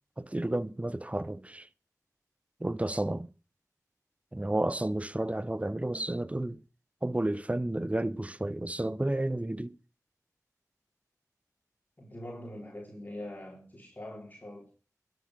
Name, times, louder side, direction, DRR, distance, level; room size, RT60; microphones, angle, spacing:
voice 1, 0.2-1.7 2.6-3.3 4.3-6.6 7.0-9.7, right 1 dB, 20° right, 0.8 m, -31 dB
voice 2, 12.0-14.7, left 1 dB, 30° left, 4.4 m, -43 dB
12.5 x 7.8 x 6.7 m
cardioid pair, 40°, 6 cm